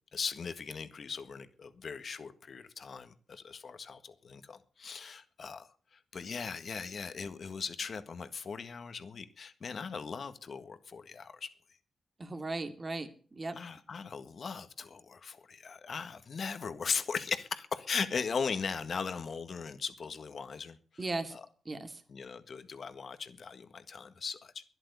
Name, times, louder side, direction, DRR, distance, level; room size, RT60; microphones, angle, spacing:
voice 1, 0.1-11.5 13.6-21.0 21.3-21.5 22.1-24.6, left 5 dB, 60° left, 10 dB, 1.6 m, -39 dB
voice 2, 12.2-13.6 21.0-21.4 21.7-22.0, right 2 dB, 35° right, 7 dB, 2.4 m, -37 dB
12.5 x 11.0 x 8.3 m, 0.41 s
cardioid pair, 55°, 0 cm